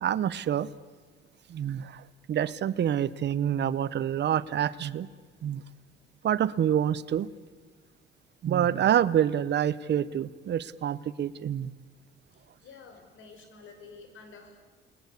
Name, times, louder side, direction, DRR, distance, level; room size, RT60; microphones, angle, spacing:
voice 1, 0.0-0.7 1.5-2.0 2.3-5.1 5.4-5.6 6.2-7.3 8.4-11.7, right 10 dB, 60° right, 17 dB, 0.9 m, -27 dB
voice 2, 12.3-14.6, left 4 dB, 80° left, 5 dB, 5.0 m, -50 dB
28.5 x 20.0 x 8.3 m, 1.4 s
cardioid pair, 90°, 20 cm